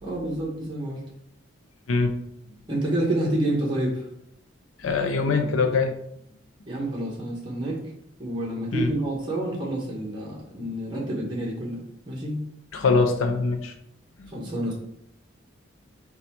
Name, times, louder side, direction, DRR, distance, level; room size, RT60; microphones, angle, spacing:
voice 1, 0.0-1.0 2.7-4.1 6.7-7.8 8.2-12.4 14.3-14.7, right 1 dB, 25° right, -4 dB, 1.0 m, -28 dB
voice 2, 4.8-5.9 8.7-8.9 12.7-13.7 14.2-14.3, left 4 dB, 80° left, 5 dB, 0.5 m, -23 dB
5.1 x 2.3 x 4.3 m, 0.74 s
head